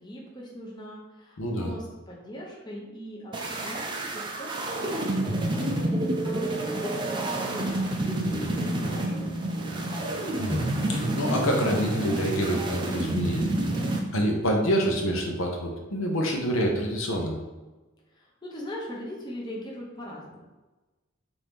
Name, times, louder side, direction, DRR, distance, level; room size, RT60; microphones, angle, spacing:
voice 1, 0.0-10.1 18.1-20.4, equal, 20° left, -3 dB, 0.7 m, -40 dB
voice 2, 1.4-1.7 10.3-13.5 14.1-17.4, equal, 75° left, 1 dB, 0.7 m, -27 dB
sound 1, 3.3-14.0, right 1 dB, 20° right, 0.4 m, -29 dB
4.4 x 2.6 x 3.5 m, 1.2 s
head